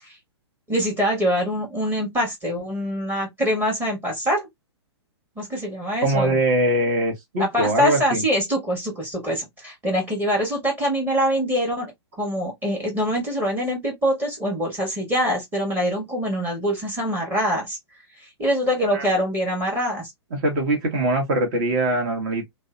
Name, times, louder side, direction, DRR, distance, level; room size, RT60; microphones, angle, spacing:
voice 1, 0.7-4.5 5.4-6.4 7.4-11.9 12.2-17.8 18.2-20.1, equal, 15° right, 1.2 m, -24 dB
voice 2, 6.0-8.2 18.9-19.0 20.3-22.5, right 1 dB, 45° right, 1.2 m, -22 dB
2.6 x 2.1 x 2.4 m
figure-of-eight pair, 115°, 15 cm